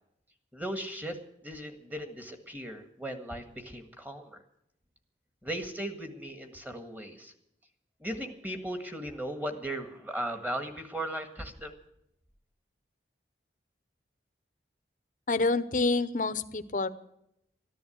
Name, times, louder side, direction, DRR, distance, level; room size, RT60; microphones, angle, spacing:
voice 1, 0.5-4.4 5.4-7.3 8.0-11.7, right 1 dB, 10° right, 6 dB, 1.7 m, -37 dB
voice 2, 15.3-16.9, left 3 dB, 45° left, 12 dB, 0.8 m, -27 dB
14.0 x 11.0 x 8.1 m, 0.77 s
head